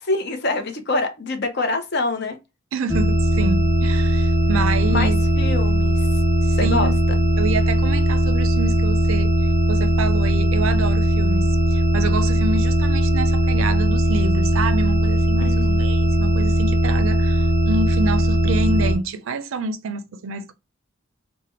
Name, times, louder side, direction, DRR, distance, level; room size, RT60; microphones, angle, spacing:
voice 1, 0.0-2.4 4.9-6.0 6.6-6.9 15.4-15.8, left 2 dB, 55° left, 0.7 m, -25 dB
voice 2, 2.7-5.2 6.4-6.9 7.4-9.4 9.7-20.5, right 3 dB, 80° right, 0.4 m, -27 dB
sound 1, 2.9-19.0, right 1 dB, 15° right, 0.6 m, -19 dB
3.3 x 2.1 x 4.3 m
head